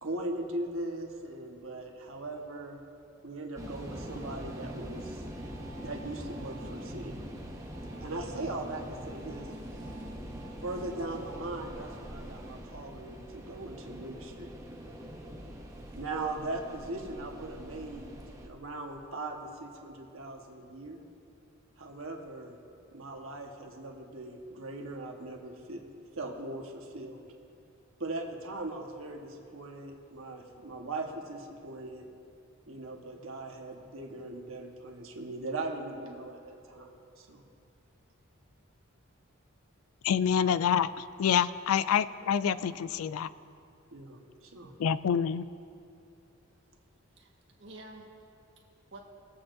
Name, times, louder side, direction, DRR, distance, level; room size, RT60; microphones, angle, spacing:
voice 1, 0.0-2.8 3.2-5.2 5.8-7.1 8.0-9.5 10.6-14.5 16.0-18.2 18.4-21.0 21.8-22.6 22.9-25.8 26.2-27.2 28.0-32.1 32.7-37.4 43.9-44.7, right 2 dB, 75° right, 2 dB, 1.2 m, -39 dB
sound 1, 3.6-18.5, equal, 15° right, 0.8 m, -43 dB
voice 2, 9.5-10.4 47.1-48.1 48.9-49.0, right 2 dB, 60° right, 0 dB, 1.4 m, -51 dB
voice 3, 40.0-43.3 44.8-45.4, left 8 dB, 90° left, 16 dB, 0.3 m, -27 dB
21.5 x 8.4 x 2.6 m, 2.6 s
head